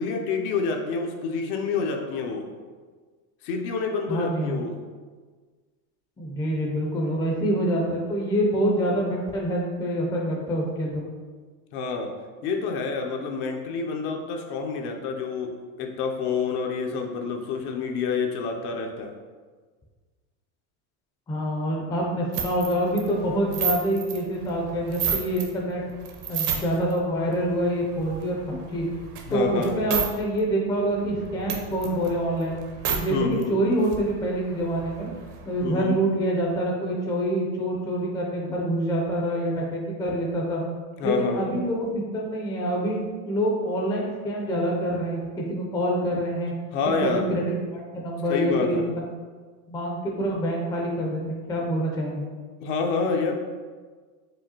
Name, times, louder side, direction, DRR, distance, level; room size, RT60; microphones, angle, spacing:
voice 1, 0.0-2.5 3.4-4.8 11.7-12.1 12.4-19.1 29.3-29.8 33.1-33.6 35.6-36.0 41.0-41.5 46.7-47.3 48.3-48.9 52.6-53.4, left 4 dB, 70° left, 3 dB, 0.7 m, -28 dB
voice 2, 4.1-4.6 6.2-11.1 21.3-25.8 26.3-28.9 29.3-32.6 32.9-35.1 35.4-40.6 41.0-46.5 46.9-48.8 49.7-52.3, right 1 dB, 10° left, -2 dB, 0.4 m, -26 dB
sound 1, 22.3-25.5 25.9-26.9 27.3-30.1 30.4-30.5 30.8-33.0 33.4-33.5 33.7-35.7, right 7 dB, 45° right, 0.6 m, -32 dB
4.8 x 2.3 x 2.8 m, 1.5 s
supercardioid pair, 115°, 46 cm